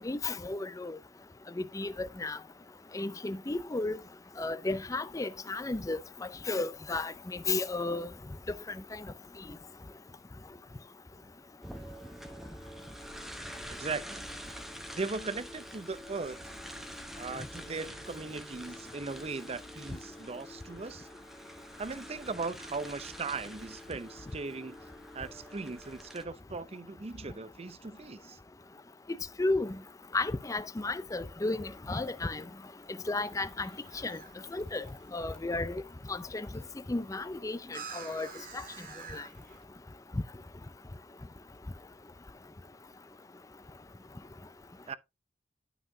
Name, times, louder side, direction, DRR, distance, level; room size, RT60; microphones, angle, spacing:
voice 1, 0.0-1.0 1.6-2.4 2.9-4.0 4.4-6.0 6.5-8.1 29.4-29.8 30.1-32.4 33.1-33.7 34.0-34.2 34.5-34.9 35.1-35.8 36.1-36.5 36.9-38.3 38.5-38.6 39.1-39.2, left 2 dB, 20° left, 0.5 m, -33 dB
sound 1, 11.6-26.2, equal, ahead, 0.8 m, -46 dB
voice 2, 13.7-14.2 14.9-16.4 17.2-21.1 21.8-24.8 25.1-28.4 44.9-45.0, right 4 dB, 35° right, 0.5 m, -38 dB
sound 2, 33.2-39.6, right 5 dB, 50° right, 1.9 m, -50 dB
12.0 x 5.7 x 2.7 m
head